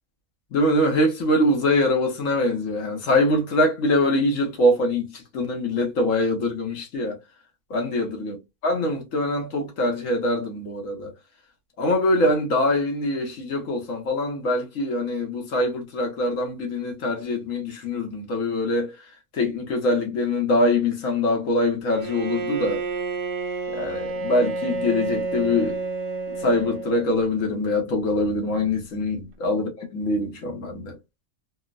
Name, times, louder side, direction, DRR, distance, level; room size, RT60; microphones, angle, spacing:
voice 1, 0.5-7.2 7.7-8.4 8.6-11.1 11.8-18.9 19.3-22.8 23.7-25.8 26.3-31.0, left 1 dB, 80° left, 1.3 m, -23 dB
Bowed string instrument, 21.9-27.4, right 4 dB, 75° right, 1.0 m, -30 dB
3.5 x 2.0 x 2.3 m
omnidirectional pair, 1.3 m